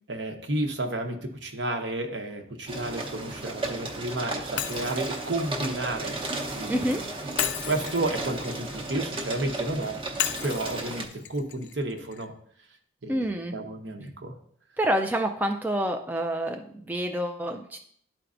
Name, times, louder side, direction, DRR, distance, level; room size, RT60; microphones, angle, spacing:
voice 1, 0.1-6.2 6.5-7.0 7.7-10.0 10.4-12.3 13.0-13.2 13.5-14.3, right 2 dB, 65° right, 4 dB, 0.9 m, -31 dB
sound 1, 2.7-11.0, right 2 dB, 25° right, 0.8 m, -34 dB
Shatter, 4.6-6.6 7.4-9.5 10.2-12.3, left 10 dB, 65° left, 0.4 m, -35 dB
voice 2, 6.7-7.0 13.1-13.5 14.8-17.8, right 1 dB, 10° right, 4 dB, 0.3 m, -27 dB
12.0 x 4.5 x 2.5 m, 0.63 s
head